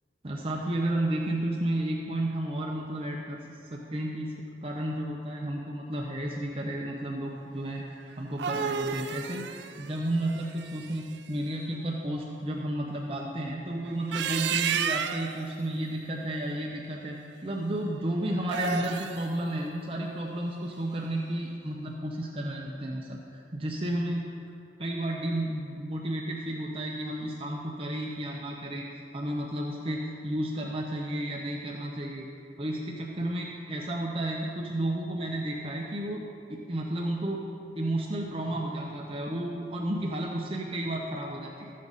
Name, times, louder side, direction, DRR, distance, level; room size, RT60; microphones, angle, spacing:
voice 1, 0.2-3.4 3.7-24.2 24.8-28.9 29.1-32.3 32.6-36.2 36.5-37.4 37.8-41.7, right 1 dB, 30° right, -2 dB, 0.7 m, -32 dB
sound 1, 8.1-11.2 13.9-15.4 18.4-19.3, right 7 dB, 80° right, 0.4 m, -32 dB
13.5 x 7.4 x 4.1 m, 2.5 s
head